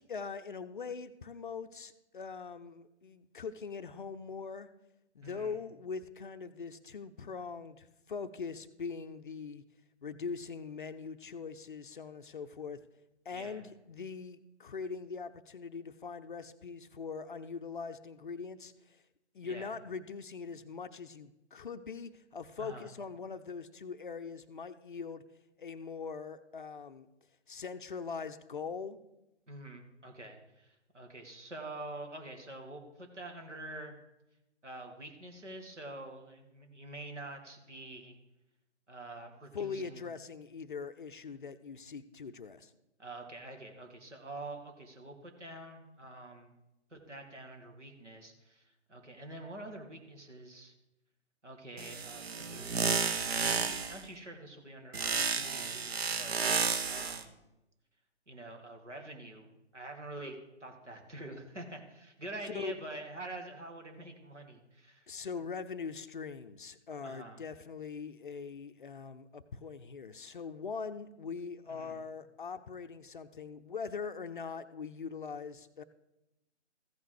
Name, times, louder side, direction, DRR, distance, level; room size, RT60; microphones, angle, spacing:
voice 1, 0.0-4.7 5.1-9.6 10.0-12.8 13.3-19.0 19.3-25.2 25.6-27.1 27.5-29.0 39.5-42.7 62.5-62.7 65.1-75.8, left 5 dB, 45° left, 11 dB, 0.5 m, -42 dB
voice 2, 5.2-5.6 13.3-13.6 19.4-19.7 22.6-22.9 29.5-33.9 34.6-38.2 38.9-40.1 43.0-46.5 46.9-50.7 51.4-57.3 58.3-59.5 59.7-65.1 67.0-67.4 71.7-72.0, right 2 dB, 80° right, 3 dB, 2.0 m, -46 dB
sound 1, 51.8-54.0 54.9-57.2, right 5 dB, 60° right, 0.9 m, -32 dB
14.5 x 5.5 x 4.8 m, 0.92 s
figure-of-eight pair, 135°, 35 cm